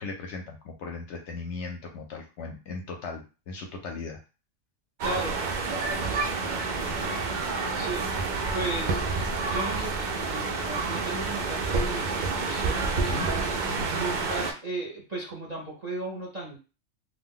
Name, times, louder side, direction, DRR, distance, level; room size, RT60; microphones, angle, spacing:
voice 1, 0.0-4.2 13.0-13.3 13.7-13.9, left 4 dB, 65° left, 3 dB, 0.8 m, -37 dB
voice 2, 5.0-5.4 6.8-7.2 7.7-8.1 8.5-9.0 9.4-13.1 13.9-16.6, right 2 dB, 40° right, -3 dB, 0.7 m, -36 dB
sound 1, 5.0-14.5, right 4 dB, 75° right, 0.4 m, -29 dB
sound 2, 6.0-13.6, left 3 dB, 90° left, 0.4 m, -45 dB
2.4 x 2.1 x 3.6 m, 0.32 s
omnidirectional pair, 1.4 m